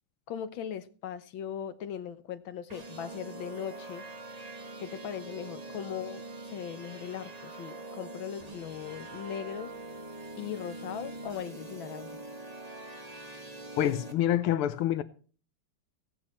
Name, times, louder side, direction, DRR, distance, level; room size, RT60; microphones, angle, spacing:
voice 1, 0.3-4.0 4.8-9.7 10.4-12.2, left 9 dB, 70° left, 1.6 m, -39 dB
sound 1, 2.7-14.1, right 2 dB, 20° right, 1.2 m, -44 dB
voice 2, 13.8-15.0, left 12 dB, 85° left, 1.6 m, -27 dB
16.5 x 9.3 x 4.3 m
omnidirectional pair, 2.3 m